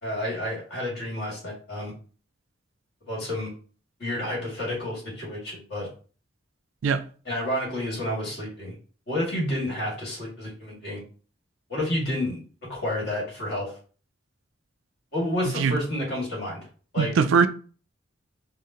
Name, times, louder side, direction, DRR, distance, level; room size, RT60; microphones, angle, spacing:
voice 1, 0.0-1.9 3.1-3.5 4.0-5.9 7.3-8.7 9.1-11.0 11.7-13.7 15.1-16.6 16.9-17.1, left 1 dB, 55° left, 1.9 m, -30 dB
voice 2, 17.0-17.5, right 5 dB, 80° right, 0.4 m, -21 dB
4.9 x 2.1 x 2.8 m
head